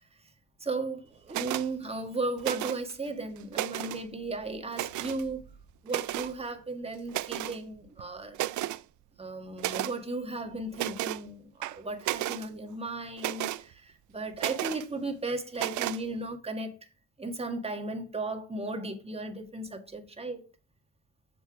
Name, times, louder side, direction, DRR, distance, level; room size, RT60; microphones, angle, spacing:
voice 1, 0.6-5.6 5.8-8.4 9.2-16.8 17.2-20.4, right 2 dB, 20° right, 1.8 m, -35 dB
sound 1, 1.3-1.7 2.4-2.9 3.4-4.0 4.7-5.2 5.9-6.3 7.1-7.6 8.0-8.1 8.3-8.8 9.6-9.9 10.7-11.2 11.6-12.5 13.2-13.6 14.4-14.8 15.5-16.0, right 15 dB, 75° right, 0.5 m, -33 dB
6.9 x 6.0 x 4.8 m
cardioid pair, 90°, 30 cm